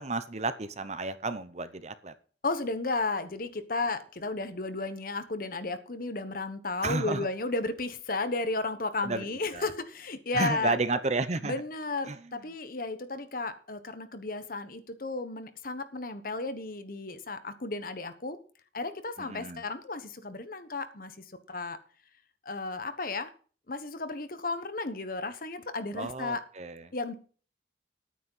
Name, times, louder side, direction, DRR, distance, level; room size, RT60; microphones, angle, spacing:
voice 1, 0.0-2.1 6.8-7.3 9.0-9.2 9.5-9.7 10.3-11.5 12.1-12.2 19.2-19.6 25.9-26.8, right 3 dB, 40° right, 12 dB, 0.8 m, -32 dB
voice 2, 2.4-10.8 11.4-18.4 18.7-21.1 21.5-21.8 22.4-23.3 23.7-26.4 26.9-27.1, left 3 dB, 50° left, 10 dB, 1.1 m, -33 dB
10.5 x 9.4 x 5.6 m, 0.41 s
head